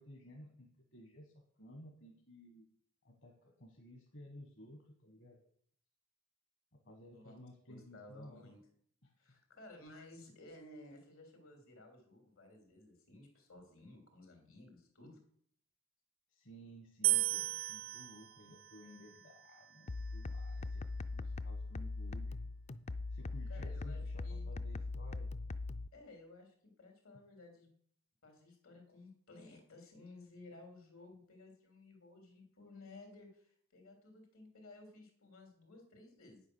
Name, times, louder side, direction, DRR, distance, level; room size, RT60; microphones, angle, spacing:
voice 1, 0.0-2.7 3.0-5.4 6.7-8.5 9.0-9.1 16.3-20.8 21.1-22.4 23.1-25.3, equal, 60° left, 1 dB, 1.6 m, -56 dB
voice 2, 7.0-7.3 7.7-8.6 9.2-15.2 23.5-24.5 25.9-27.7 28.2-36.4, left 2 dB, 80° left, 3 dB, 3.5 m, -56 dB
sound 1, 17.0-20.3, right 17 dB, 70° right, 0.5 m, -37 dB
sound 2, 19.9-25.9, left 3 dB, 30° left, 0.4 m, -41 dB
9.2 x 8.5 x 6.4 m, 0.62 s
head